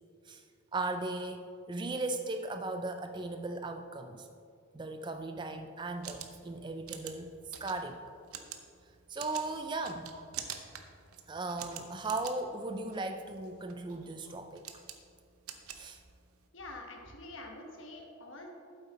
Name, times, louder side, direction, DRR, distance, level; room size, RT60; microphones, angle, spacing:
voice 1, 0.7-4.3 4.7-7.3 7.6-8.0 9.1-10.2 11.3-14.7 15.7-16.0, right 2 dB, 20° right, 7 dB, 0.3 m, -37 dB
sound 1, 5.8-16.5, right 9 dB, 85° right, 0.7 m, -47 dB
voice 2, 16.5-18.5, left 2 dB, 60° left, 2 dB, 1.2 m, -46 dB
8.6 x 8.0 x 4.1 m, 2.3 s
head